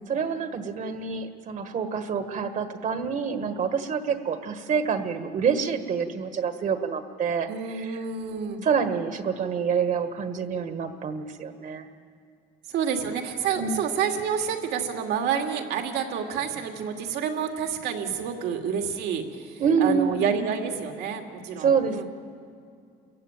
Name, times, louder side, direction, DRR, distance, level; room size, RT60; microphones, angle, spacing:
voice 1, 0.1-8.0 8.6-11.8 13.6-13.8 19.6-20.5 21.6-22.0, right 6 dB, 50° right, 8 dB, 1.5 m, -27 dB
voice 2, 7.5-8.6 12.7-22.0, right 7 dB, 80° right, 3 dB, 2.5 m, -29 dB
28.5 x 15.5 x 8.9 m, 2.4 s
cardioid pair, 110°, 17 cm